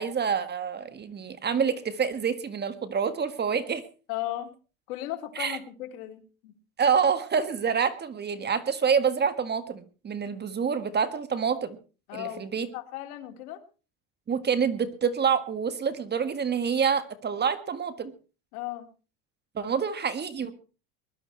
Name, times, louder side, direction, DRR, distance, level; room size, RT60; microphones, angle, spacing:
voice 1, 0.0-3.8 5.4-5.6 6.8-11.8 12.1-12.7 14.3-18.1 19.6-20.5, right 6 dB, 25° right, 12 dB, 1.7 m, -27 dB
voice 2, 4.1-4.5 4.9-6.6 12.1-13.6 18.5-18.9 19.6-19.7, left 14 dB, 85° left, 7 dB, 2.6 m, -36 dB
20.5 x 11.5 x 4.4 m, 0.36 s
supercardioid pair, 130°, 43 cm